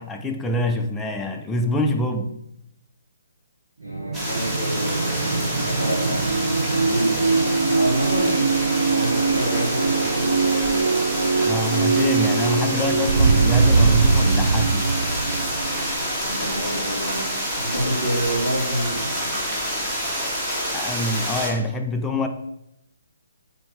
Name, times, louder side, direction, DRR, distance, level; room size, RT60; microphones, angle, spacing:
voice 1, 0.0-2.3 11.4-14.9 20.7-22.3, left 1 dB, 10° left, 0.5 m, -25 dB
sound 1, 3.8-17.3, right 4 dB, 60° right, 0.5 m, -22 dB
voice 2, 3.8-6.4 6.7-10.9 16.2-19.3, right 1 dB, 85° right, 2.1 m, -28 dB
sound 2, 4.1-21.5, equal, 10° right, 1.7 m, -28 dB
6.9 x 4.3 x 3.2 m
figure-of-eight pair, 135°, 0 cm